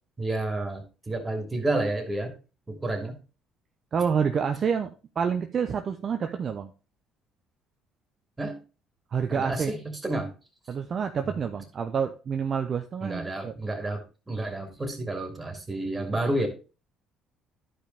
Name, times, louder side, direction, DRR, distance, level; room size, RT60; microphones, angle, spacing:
voice 1, 0.2-2.3 2.7-3.2 8.4-8.6 9.3-10.3 13.0-16.5, right 2 dB, 20° right, 4 dB, 2.9 m, -30 dB
voice 2, 3.9-6.7 9.1-9.7 10.7-13.5, right 6 dB, 50° right, 6 dB, 0.7 m, -28 dB
11.5 x 5.3 x 3.5 m, 0.32 s
supercardioid pair, 70°, 0 cm